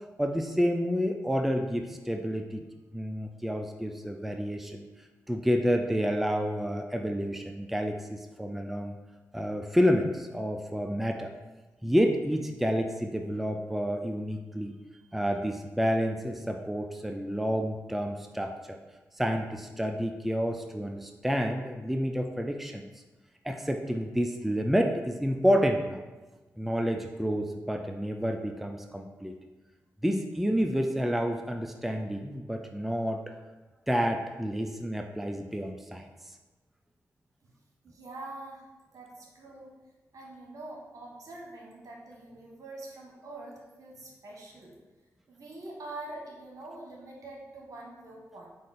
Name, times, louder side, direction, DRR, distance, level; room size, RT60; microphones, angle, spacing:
voice 1, 0.2-2.6 2.9-4.8 5.3-9.0 9.3-11.3 11.8-14.8 15.1-18.8 19.1-22.9 23.4-26.0 26.6-29.3 30.0-33.2 33.9-36.3, equal, 5° right, 4 dB, 0.4 m, -29 dB
voice 2, 37.8-38.6 38.9-39.8 40.1-44.7 45.3-48.5, right 2 dB, 65° right, -2 dB, 1.2 m, -44 dB
5.0 x 2.5 x 4.1 m, 1.2 s
supercardioid pair, 45°, 6 cm